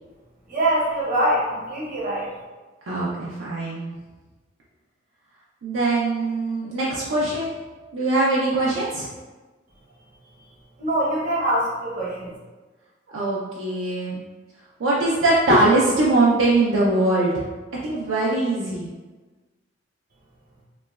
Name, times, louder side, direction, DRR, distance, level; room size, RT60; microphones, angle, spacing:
voice 1, 0.5-2.3 10.8-12.3, right 1 dB, 45° right, -6 dB, 0.8 m, -23 dB
voice 2, 2.9-3.9 5.6-7.5 7.9-9.1 13.1-14.2 14.8-17.5 17.8-18.9, right 2 dB, 70° right, -6 dB, 0.4 m, -21 dB
3.0 x 2.1 x 2.2 m, 1.3 s
head